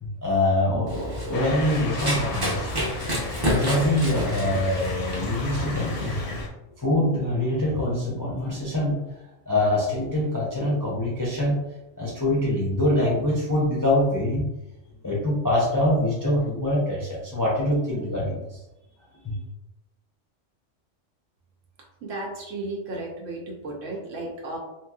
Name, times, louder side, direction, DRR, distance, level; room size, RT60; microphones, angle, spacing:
voice 1, 0.0-2.7 3.5-6.4 6.8-9.0 9.5-11.6 12.0-14.5 15.0-18.6 19.2-19.4, left 1 dB, 30° left, -5 dB, 0.3 m, -24 dB
Run, 0.9-6.4, equal, 25° right, 0.6 m, -30 dB
Motor vehicle (road) / Siren, 1.3-6.5, left 3 dB, 60° left, 0.6 m, -35 dB
voice 2, 22.0-24.6, right 2 dB, 80° right, -1 dB, 1.1 m, -34 dB
3.0 x 2.8 x 2.3 m, 0.93 s
omnidirectional pair, 1.3 m